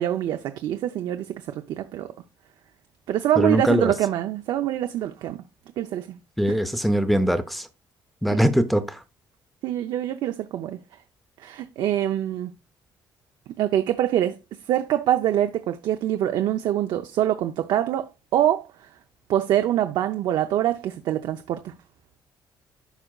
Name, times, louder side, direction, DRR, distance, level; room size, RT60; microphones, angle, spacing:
voice 1, 0.0-2.1 3.1-5.4 5.8-6.2 6.5-6.6 8.3-8.4 9.6-10.8 11.4-12.5 13.6-14.4 14.7-18.7 19.3-21.7, right 12 dB, 70° right, 0.5 m, -24 dB
voice 2, 3.4-3.9 6.4-7.7 8.2-9.0, equal, ahead, 0.6 m, -21 dB
12.5 x 5.0 x 2.3 m
cardioid pair, 165°, 8 cm